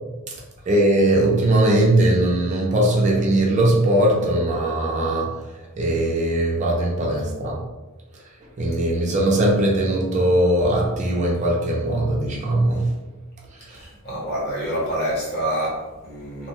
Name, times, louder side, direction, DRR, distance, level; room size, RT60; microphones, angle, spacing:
voice 1, 0.7-5.4 5.8-7.6 8.6-12.9, right 1 dB, 35° right, -2 dB, 0.5 m, -20 dB
voice 2, 13.7-16.5, equal, 50° left, -5 dB, 1.0 m, -27 dB
2.8 x 2.1 x 3.0 m, 1.1 s
head